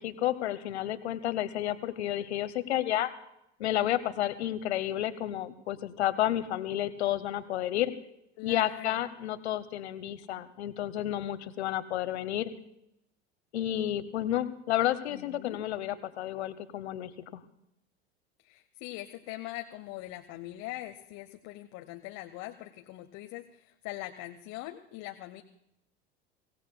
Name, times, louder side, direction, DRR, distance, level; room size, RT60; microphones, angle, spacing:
voice 1, 0.0-3.1 3.6-7.9 8.4-12.5 13.5-17.4, left 12 dB, 75° left, 13 dB, 1.1 m, -31 dB
voice 2, 8.4-9.0 15.1-15.6 18.4-25.4, left 16 dB, 50° left, 5 dB, 1.0 m, -42 dB
24.5 x 17.0 x 2.3 m, 0.80 s
hypercardioid pair, 80°, 33 cm